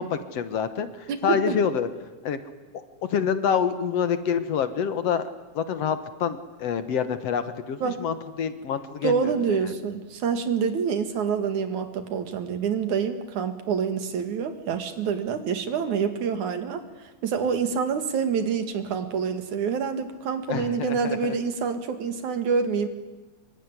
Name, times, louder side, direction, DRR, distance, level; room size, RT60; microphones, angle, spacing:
voice 1, 0.0-1.9 2.2-2.4 2.7-5.3 5.6-9.6 20.5-21.3, left 7 dB, 60° left, 10 dB, 2.3 m, -27 dB
voice 2, 1.1-1.6 7.8-8.0 9.0-16.8 17.2-22.9, right 6 dB, 85° right, 8 dB, 3.5 m, -27 dB
25.0 x 23.5 x 9.8 m, 1.2 s
omnidirectional pair, 3.3 m